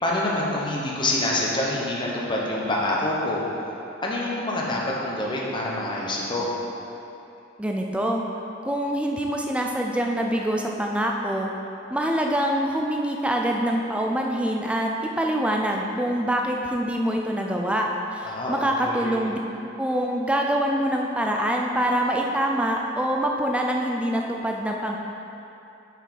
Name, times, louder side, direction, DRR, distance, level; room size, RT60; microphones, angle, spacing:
voice 1, 0.0-3.4 4.0-6.5 18.2-19.2, left 1 dB, 25° left, -4 dB, 1.0 m, -26 dB
voice 2, 7.6-8.2 8.6-11.5 11.9-14.9 15.2-19.4 19.8-25.0, right 1 dB, 5° right, 0 dB, 0.4 m, -25 dB
7.2 x 5.8 x 4.0 m, 2.8 s
head